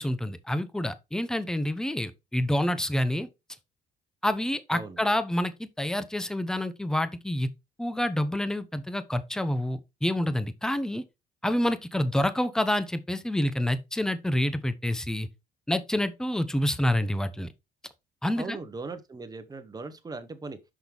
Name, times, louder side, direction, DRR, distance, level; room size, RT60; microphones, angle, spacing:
voice 1, 0.0-3.3 4.2-7.5 7.8-11.0 11.4-15.3 15.7-17.5 18.2-18.6, left 1 dB, 5° left, 0.8 m, -28 dB
voice 2, 18.4-20.6, right 3 dB, 20° right, 1.3 m, -39 dB
6.3 x 5.6 x 3.5 m
cardioid pair, 110°, 17 cm